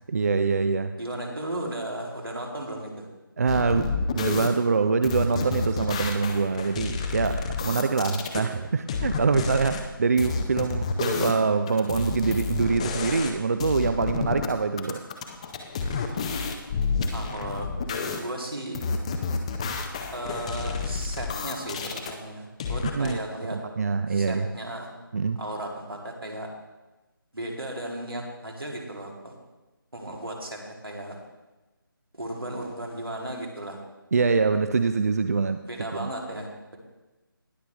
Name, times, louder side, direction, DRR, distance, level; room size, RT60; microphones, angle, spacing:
voice 1, 0.1-0.9 3.4-15.0 22.9-23.2 23.5-24.5 25.1-25.4 34.1-35.6 36.0-36.1, right 4 dB, 40° right, 9 dB, 0.4 m, -24 dB
voice 2, 1.0-3.0 17.1-18.8 20.1-23.6 24.1-24.9 25.4-26.5 27.3-29.3 29.9-31.2 32.1-33.8 35.6-36.5, right 1 dB, 90° right, -1 dB, 2.6 m, -35 dB
sound 1, 3.5-4.5 5.0-8.4 8.9-9.8 10.2-11.4 11.7-13.4 13.6-14.5 14.8-18.2 18.7-22.1 22.6-23.1, left 5 dB, 15° left, 0.5 m, -30 dB
19.5 x 6.8 x 3.3 m, 1.1 s
figure-of-eight pair, 155°, 12 cm